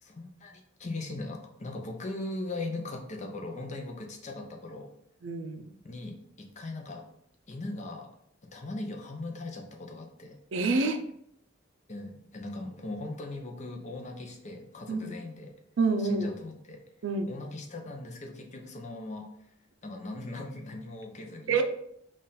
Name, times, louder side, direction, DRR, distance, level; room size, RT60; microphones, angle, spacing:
voice 1, 0.0-4.9 5.8-7.0 7.5-8.1 8.5-10.4 11.9-15.5 16.0-16.8 17.3-19.3 19.8-21.5, left 2 dB, 40° left, 2 dB, 0.6 m, -39 dB
voice 2, 5.2-5.6 10.5-11.0 14.9-15.1 15.8-16.3 17.0-17.3 21.5-21.6, right 3 dB, 90° right, 7 dB, 0.5 m, -27 dB
3.8 x 2.5 x 4.0 m, 0.72 s
head